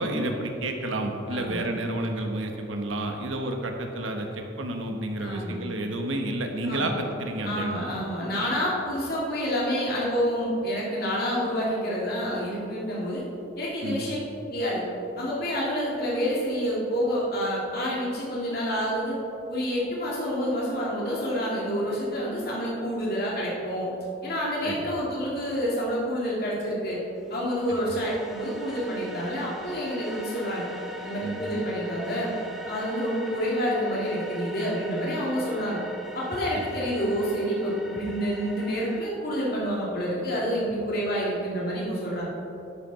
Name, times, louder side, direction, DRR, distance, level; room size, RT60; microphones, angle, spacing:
voice 1, 0.0-7.8 13.8-14.0 24.6-24.9 27.7-27.8 31.2-31.4 36.5-36.7, right 1 dB, 90° right, 3 dB, 1.2 m, -30 dB
voice 2, 1.3-1.6 5.2-5.5 6.6-6.9 7.4-13.2 13.6-14.2 14.5-14.8 15.2-19.2 19.5-23.9 24.2-27.0 27.3-30.7 31.0-32.3 32.7-35.8 36.1-42.2, equal, 50° left, -5 dB, 2.6 m, -28 dB
sound 1, 27.2-39.0, left 1 dB, ahead, 0.8 m, -42 dB
11.5 x 9.3 x 4.1 m, 2.8 s
head